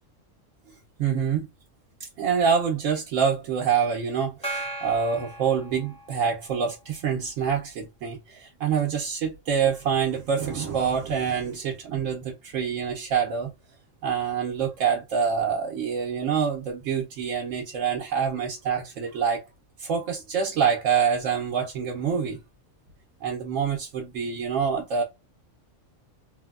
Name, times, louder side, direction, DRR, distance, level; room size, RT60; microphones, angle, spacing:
voice 1, 1.0-1.5 2.0-13.5 14.0-19.4 19.8-22.4 23.2-25.0, right 7 dB, 90° right, 1.1 m, -26 dB
Gong, 4.4-6.5, right 2 dB, 10° left, 0.3 m, -36 dB
3.2 x 2.1 x 2.3 m
omnidirectional pair, 1.3 m